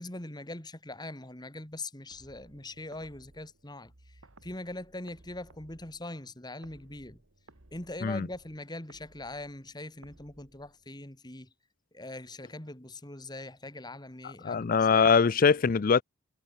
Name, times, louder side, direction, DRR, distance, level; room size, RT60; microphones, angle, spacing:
voice 1, 0.0-7.2 7.7-11.5 11.9-15.1, left 2 dB, 20° left, 2.2 m, -42 dB
sound 1, 2.1-11.2, right 2 dB, 60° right, 2.1 m, -59 dB
voice 2, 14.4-16.0, left 5 dB, 40° left, 0.4 m, -22 dB
head